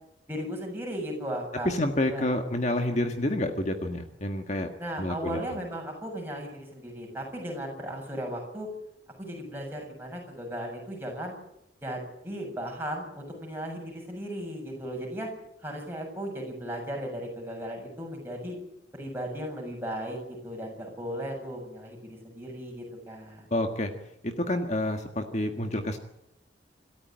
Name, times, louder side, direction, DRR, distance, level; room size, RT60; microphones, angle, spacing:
voice 1, 0.3-1.7 2.1-2.3 4.8-8.7 9.2-11.4 11.8-15.3 15.6-18.6 18.9-23.5, equal, 10° right, 0 dB, 7.3 m, -36 dB
voice 2, 1.7-4.7 5.0-5.4 23.5-23.9 24.2-26.0, left 1 dB, 40° left, 5 dB, 1.7 m, -28 dB
27.5 x 14.0 x 8.9 m, 0.81 s
head